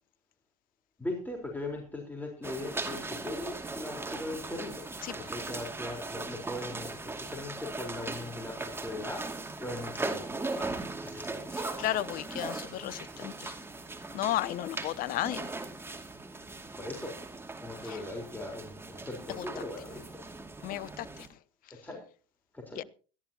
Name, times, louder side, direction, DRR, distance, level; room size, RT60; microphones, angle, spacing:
voice 1, 1.0-4.8 5.1-9.3 9.6-10.7 11.0-11.5 16.8-17.1 17.6-20.0 21.8-22.0 22.5-22.8, left 2 dB, 10° left, 4.2 m, -39 dB
sound 1, 2.4-21.3, right 3 dB, 15° right, 2.4 m, -39 dB
voice 2, 11.6-13.5 14.1-15.5 17.8-18.0 19.4-19.5 20.6-21.1 22.8-22.9, left 14 dB, 50° left, 0.8 m, -34 dB
21.5 x 14.0 x 2.9 m
hypercardioid pair, 80°, 19 cm